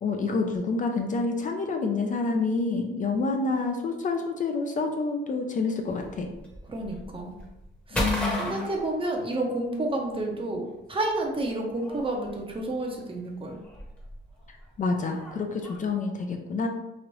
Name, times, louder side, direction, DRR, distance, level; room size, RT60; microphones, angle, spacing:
voice 1, 0.0-6.3 7.9-8.7 14.8-16.7, left 3 dB, 40° left, 4 dB, 0.4 m, -28 dB
sound 1, 5.9-9.8 10.0-15.8, equal, 5° left, 0.9 m, -35 dB
voice 2, 6.7-7.3 7.9-8.0 8.4-13.6, right 2 dB, 25° right, 0 dB, 0.7 m, -30 dB
3.0 x 2.5 x 3.0 m, 0.95 s
cardioid pair, 90°, 20 cm